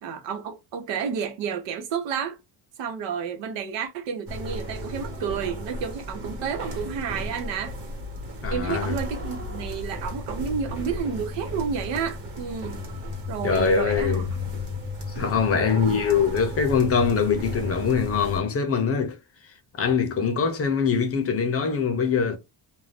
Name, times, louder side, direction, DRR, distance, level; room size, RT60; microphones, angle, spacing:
voice 1, 0.0-2.4 2.8-7.7 8.5-12.8 13.3-14.4 15.3-15.8 20.1-20.4, right 7 dB, 85° right, 0.8 m, -31 dB
sound 1, 4.3-18.4, left 2 dB, 65° right, 1.4 m, -34 dB
voice 2, 8.4-9.0 13.4-14.3 15.2-19.2 19.8-22.4, left 6 dB, 35° left, 0.6 m, -23 dB
2.6 x 2.2 x 3.2 m
cardioid pair, 145°, 42 cm